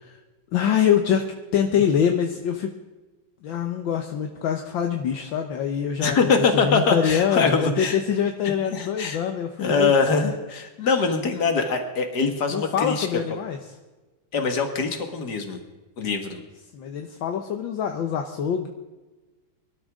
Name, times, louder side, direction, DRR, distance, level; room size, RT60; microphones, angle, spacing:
voice 1, 0.5-2.7 3.4-6.2 6.6-10.3 12.5-13.8 16.7-18.7, left 8 dB, 70° left, 4 dB, 1.7 m, -24 dB
voice 2, 6.0-8.0 8.7-9.2 9.6-13.2 14.3-15.6 16.0-16.4, left 4 dB, 50° left, 5 dB, 2.3 m, -23 dB
24.5 x 12.5 x 3.7 m, 1.2 s
omnidirectional pair, 2.3 m